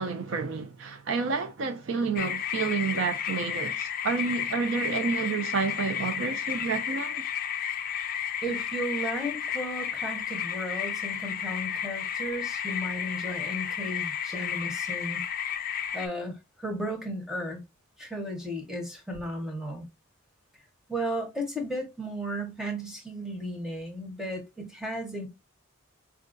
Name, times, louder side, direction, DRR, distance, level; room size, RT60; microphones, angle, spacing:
voice 1, 0.0-7.3, right 5 dB, 60° right, 0.4 m, -30 dB
sound 1, 2.2-16.1, left 9 dB, 40° left, 0.4 m, -32 dB
voice 2, 8.4-15.2 15.9-17.6 18.0-19.9 20.9-25.3, right 1 dB, ahead, 0.8 m, -34 dB
4.4 x 2.4 x 2.4 m
head